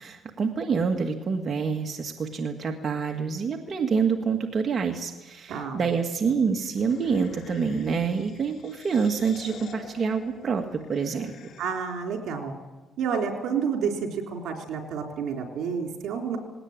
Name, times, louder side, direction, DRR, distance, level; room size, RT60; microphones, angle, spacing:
voice 1, 0.0-11.3, right 5 dB, 45° right, 3 dB, 2.0 m, -27 dB
voice 2, 5.5-5.8 11.6-12.5 13.0-16.4, right 6 dB, 75° right, 2 dB, 3.8 m, -29 dB
sound 1, 6.6-12.1, left 7 dB, 70° left, 2.4 m, -46 dB
20.0 x 18.0 x 9.0 m, 1.2 s
cardioid pair, 90°, 0 cm